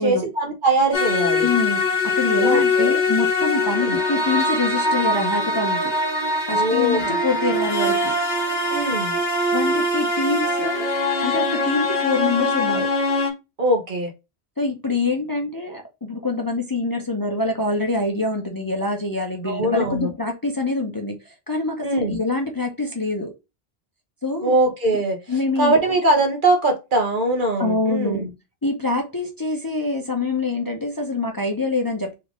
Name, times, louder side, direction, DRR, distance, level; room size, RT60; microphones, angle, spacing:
voice 1, 0.0-1.5 2.4-3.0 3.8-4.0 6.5-7.2 8.7-9.2 13.6-14.1 19.4-20.1 21.8-22.2 24.4-25.2 25.6-28.3, right 2 dB, 50° right, 1.2 m, -21 dB
sound 1, 0.9-13.3, left 2 dB, 45° left, 1.5 m, -22 dB
voice 2, 1.4-5.9 6.5-8.1 9.5-10.9 11.2-12.9 14.6-23.3 24.2-24.5 25.3-25.8 27.6-28.3 28.6-32.1, left 3 dB, 25° left, 0.7 m, -25 dB
3.5 x 3.3 x 3.7 m
omnidirectional pair, 1.1 m